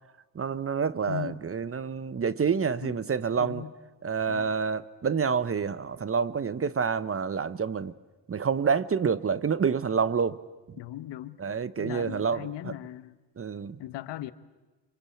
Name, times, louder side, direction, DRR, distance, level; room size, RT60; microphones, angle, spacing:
voice 1, 0.3-3.6 4.0-7.9 8.3-10.4 10.7-10.8 11.4-12.7 13.4-13.8, right 6 dB, 35° right, 0.9 m, -28 dB
voice 2, 1.1-1.4 2.8-3.0 3.3-3.7 4.3-4.6 10.8-11.4 11.8-13.2 13.8-14.3, left 13 dB, 85° left, 1.2 m, -38 dB
26.0 x 24.5 x 8.5 m
cardioid pair, 80°, 41 cm